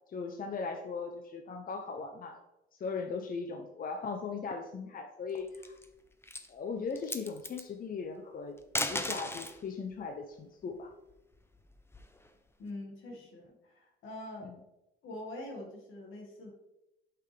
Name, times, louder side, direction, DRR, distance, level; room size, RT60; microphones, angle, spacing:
voice 1, 0.1-2.4 2.8-5.8 6.5-8.6 8.8-10.9 14.4-14.6, left 5 dB, 45° left, 5 dB, 0.8 m, -38 dB
sound 1, 5.4-5.9 6.2-6.5 6.9-7.6 8.6-9.6 11.1-12.3, left 2 dB, 10° left, 0.8 m, -36 dB
voice 2, 12.6-14.6 15.0-16.5, left 1 dB, 80° left, 1 dB, 2.0 m, -44 dB
8.2 x 5.9 x 3.4 m, 0.92 s
cardioid pair, 90°, 20 cm